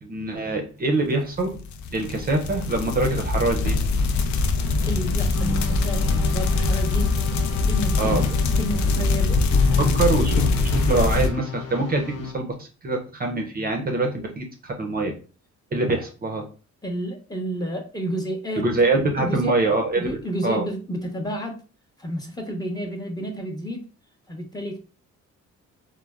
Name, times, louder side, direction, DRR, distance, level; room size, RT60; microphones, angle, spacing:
voice 1, 0.0-1.5 1.9-3.8 8.0-8.2 9.8-15.1 15.7-16.4 18.6-20.6, right 2 dB, 30° right, 3 dB, 0.5 m, -24 dB
sound 1, 1.5-11.3, left 3 dB, 70° left, 0.4 m, -22 dB
voice 2, 4.8-7.2 7.6-9.9 16.8-18.7 19.2-19.6 20.0-21.6 22.0-23.9 24.3-24.8, right 1 dB, 15° left, 2 dB, 0.7 m, -31 dB
sound 2, 5.3-12.3, left 4 dB, 50° left, 0.8 m, -33 dB
3.2 x 2.1 x 2.3 m, 0.37 s
cardioid pair, 90°, 30 cm